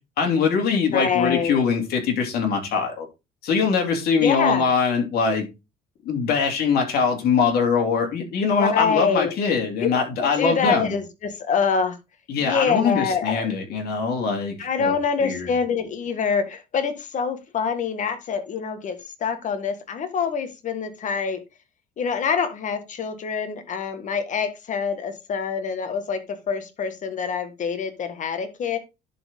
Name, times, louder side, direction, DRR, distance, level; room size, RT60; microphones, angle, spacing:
voice 1, 0.2-3.1 3.4-5.5 6.0-10.9 12.3-14.9 15.2-15.5, left 5 dB, 65° left, 2.8 m, -22 dB
voice 2, 0.9-1.6 4.2-4.7 8.6-9.3 9.8-9.9 10.2-12.0 12.4-13.5 14.6-21.4 22.0-28.8, left 6 dB, 50° left, 1.6 m, -25 dB
11.0 x 4.5 x 3.7 m
cardioid pair, 110°, 17 cm